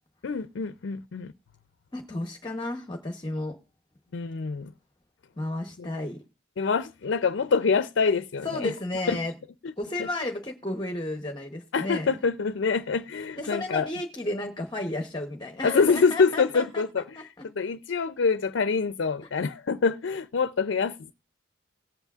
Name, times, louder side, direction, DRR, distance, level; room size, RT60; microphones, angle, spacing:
voice 1, 0.2-1.3 4.1-4.7 5.8-5.9 6.6-8.7 9.1-9.2 9.6-9.7 10.0-10.1 11.7-13.9 15.6-17.3 17.6-21.1, left 5 dB, 75° left, 0.4 m, -25 dB
voice 2, 1.9-3.6 5.4-6.2 8.4-9.3 9.8-12.2 13.4-16.8 17.2-17.4 19.2-19.3, left 1 dB, 25° left, 0.8 m, -33 dB
18.5 x 8.1 x 2.4 m
head